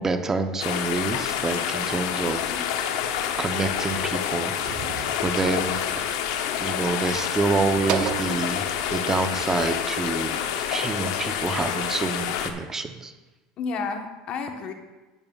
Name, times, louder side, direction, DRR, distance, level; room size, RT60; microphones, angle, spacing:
voice 1, 0.0-2.4 3.4-4.5 5.2-5.8 6.6-10.4 10.7-13.1, right 3 dB, 20° right, 7 dB, 0.7 m, -27 dB
sound 1, 0.6-12.5, left 9 dB, 75° left, 0.7 m, -28 dB
voice 2, 2.1-2.6 13.6-14.7, left 5 dB, 50° left, 5 dB, 1.1 m, -32 dB
sound 2, 2.8-9.9, right 9 dB, 60° right, 0.7 m, -37 dB
11.0 x 8.8 x 2.4 m, 1.2 s
supercardioid pair, 105°, 2 cm